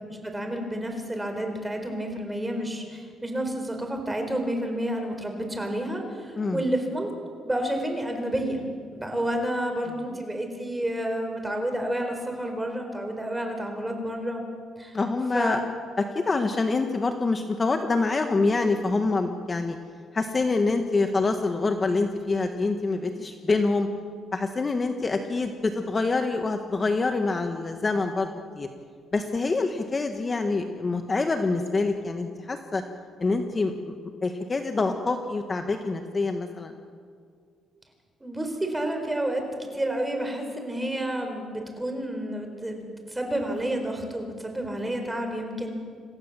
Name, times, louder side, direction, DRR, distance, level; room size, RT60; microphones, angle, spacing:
voice 1, 0.1-7.1 7.4-8.6 8.9-14.4 14.8-15.0 15.3-15.6 38.2-45.7, right 1 dB, 10° right, 4 dB, 4.5 m, -30 dB
voice 2, 14.9-15.6 16.1-19.8 20.1-23.9 24.3-28.3 28.6-28.7 29.1-32.8 33.2-33.9 34.2-36.7, left 3 dB, 30° left, 5 dB, 1.5 m, -26 dB
27.5 x 14.5 x 7.5 m, 2.2 s
cardioid pair, 100°, 0 cm